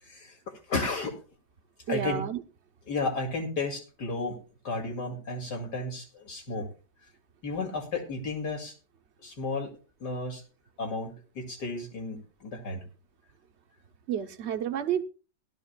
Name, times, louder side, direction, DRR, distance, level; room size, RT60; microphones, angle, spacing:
voice 1, 0.0-0.4 0.7-1.1 1.9-2.2 2.9-4.4 4.6-6.7 7.4-8.8 9.2-9.7 10.0-10.4 10.8-12.8, left 3 dB, 70° left, 3 dB, 3.0 m, -33 dB
voice 2, 1.9-2.4 14.1-15.0, right 9 dB, 50° right, 7 dB, 1.0 m, -30 dB
17.5 x 12.5 x 2.2 m, 0.34 s
omnidirectional pair, 1.8 m